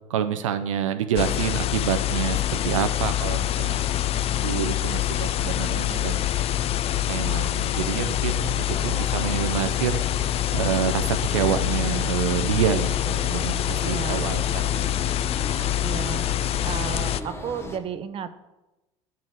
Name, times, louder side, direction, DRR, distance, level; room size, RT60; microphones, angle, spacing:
voice 1, 0.1-3.8 4.4-6.3 7.1-10.0 10.5-14.9, right 9 dB, 85° right, 9 dB, 0.5 m, -27 dB
sound 1, 1.2-17.2, left 12 dB, 40° left, 0.4 m, -25 dB
sound 2, 7.7-17.8, left 1 dB, 15° left, 1.0 m, -39 dB
voice 2, 13.8-14.3 15.8-18.5, right 8 dB, 35° right, 12 dB, 0.6 m, -33 dB
8.3 x 4.0 x 6.2 m, 1.0 s
hypercardioid pair, 75°, 16 cm